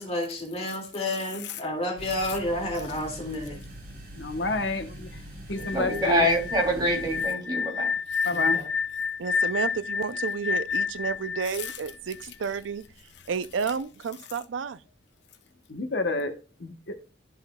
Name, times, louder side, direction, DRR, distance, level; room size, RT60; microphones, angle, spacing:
voice 1, 0.0-3.6 8.3-8.7, left 1 dB, 35° left, 2.2 m, -31 dB
sound 1, 2.0-7.2, equal, 50° right, 2.6 m, -43 dB
voice 2, 4.2-5.1 5.5-6.2 8.2-8.6 15.7-16.3 16.6-17.1, left 2 dB, 65° left, 0.9 m, -29 dB
sound 2, 5.6-12.5, left 6 dB, 90° left, 0.5 m, -29 dB
voice 3, 5.7-7.9, equal, 25° right, 2.9 m, -25 dB
voice 4, 9.2-12.8 13.3-14.8, right 6 dB, 85° right, 0.4 m, -31 dB
13.0 x 5.6 x 2.2 m
head